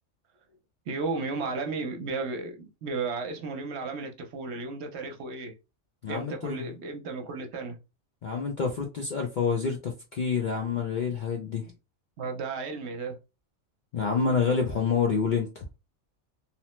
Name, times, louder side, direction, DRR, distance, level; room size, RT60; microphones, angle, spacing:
voice 1, 0.9-5.5 6.1-7.8 12.2-13.2, right 4 dB, 65° right, 0.9 m, -34 dB
voice 2, 6.0-6.7 8.2-11.7 13.9-15.7, left 5 dB, 60° left, 0.5 m, -28 dB
2.9 x 2.0 x 3.0 m
omnidirectional pair, 1.3 m